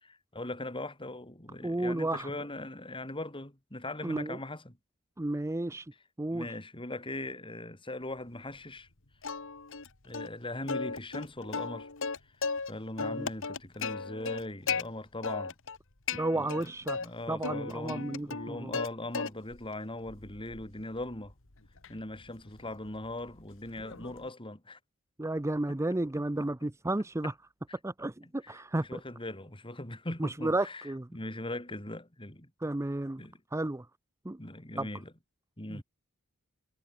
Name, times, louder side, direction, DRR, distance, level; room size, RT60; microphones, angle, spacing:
voice 1, 0.0-4.7 6.3-8.9 10.0-11.9 12.7-15.5 16.3-16.7 17.0-21.3 21.9-24.8 26.4-26.5 27.7-27.8 28.5-30.8 31.1-32.5 33.2-33.4 34.4-35.1 35.6-35.8, left 2 dB, 25° left, 4.5 m, -40 dB
voice 2, 1.6-2.3 4.0-4.4 5.2-5.9 6.2-6.5 13.0-13.3 16.1-17.0 17.3-18.8 25.2-27.3 27.8-29.0 30.2-31.1 32.6-33.2 33.5-33.9 34.2-34.4 34.8-34.9 35.7-35.8, right 2 dB, 15° right, 0.5 m, -32 dB
Plucked string instrument, 9.2-9.9 10.1-10.3 10.7-12.7 13.0-14.8 15.2-15.8 16.1-17.1 17.4-18.9 19.1-19.6 20.1-24.3, left 5 dB, 65° left, 2.1 m, -36 dB
head